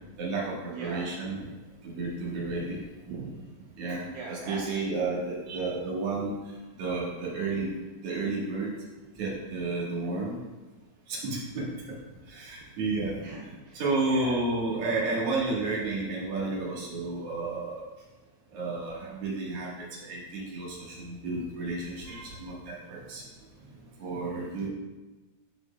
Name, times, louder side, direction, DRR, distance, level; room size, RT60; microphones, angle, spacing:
voice 1, 0.2-1.4 1.8-2.8 3.8-6.3 6.8-7.7 8.0-8.7 9.2-10.4 11.1-11.7 12.3-13.2 13.7-17.8 18.5-23.2 24.0-24.7, right 3 dB, 50° right, -6 dB, 2.0 m, -31 dB
voice 2, 0.7-1.1 1.4-1.5 3.1-3.6 4.0-4.9 13.2-14.4, right 4 dB, 80° right, -2 dB, 1.7 m, -41 dB
8.2 x 5.6 x 2.2 m, 1.2 s
omnidirectional pair, 4.1 m